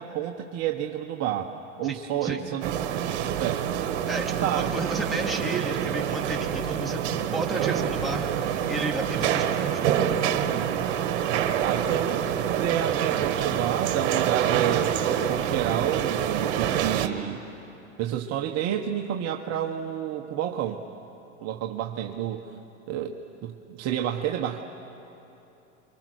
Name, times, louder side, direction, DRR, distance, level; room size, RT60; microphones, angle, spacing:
voice 1, 0.0-2.7 3.4-3.8 4.4-4.7 10.4-10.8 11.6-17.5 18.0-20.8 21.4-22.5 22.9-24.6, right 10 dB, 45° right, 3 dB, 1.4 m, -30 dB
voice 2, 1.8-2.4 4.1-10.2, right 2 dB, ahead, -3 dB, 3.4 m, -33 dB
sound 1, 2.6-17.1, right 9 dB, 60° right, 1.8 m, -26 dB
30.0 x 24.5 x 6.5 m, 3.0 s
hypercardioid pair, 90°, 37 cm